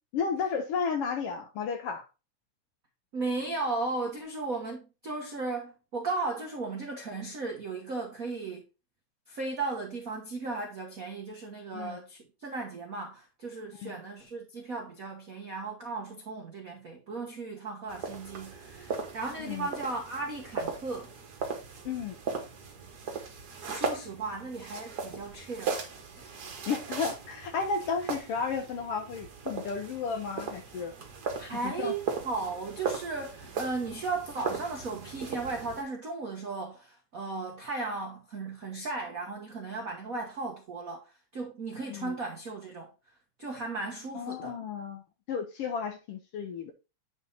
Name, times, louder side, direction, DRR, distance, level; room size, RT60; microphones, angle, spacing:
voice 1, 0.1-2.0 11.7-12.0 13.8-14.0 19.4-19.7 21.8-22.2 26.7-30.9 31.6-31.9 41.9-42.1 44.1-45.0 45.3-46.7, left 5 dB, 70° left, 1.4 m, -33 dB
voice 2, 3.1-8.6 9.3-21.1 23.7-25.8 26.2-26.3 31.4-41.1 41.3-42.9 43.4-44.6, right 3 dB, 85° right, 0.7 m, -36 dB
sound 1, 17.9-35.8, right 5 dB, 50° right, 1.3 m, -38 dB
9.1 x 3.6 x 4.0 m
omnidirectional pair, 3.3 m